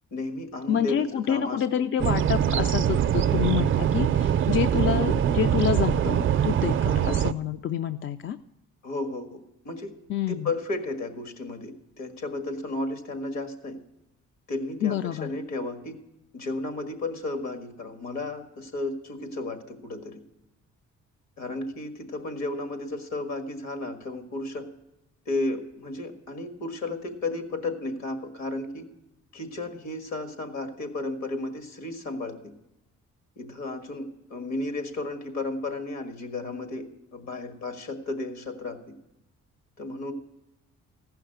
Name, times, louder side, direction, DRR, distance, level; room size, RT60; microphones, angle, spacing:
voice 1, 0.1-1.9 4.7-5.1 7.0-7.1 8.8-9.9 10.3-13.8 14.5-16.0 16.3-20.2 21.4-24.7 25.2-28.9 29.3-32.4 33.4-38.8 39.8-40.1, left 2 dB, 65° left, 6 dB, 1.8 m, -33 dB
voice 2, 0.7-8.4 10.1-10.5 14.8-15.3, left 9 dB, 40° left, 10 dB, 0.4 m, -27 dB
sound 1, 2.0-7.3, right 9 dB, 45° right, 0.4 m, -23 dB
15.0 x 5.8 x 7.8 m, 0.90 s
cardioid pair, 90°, 30 cm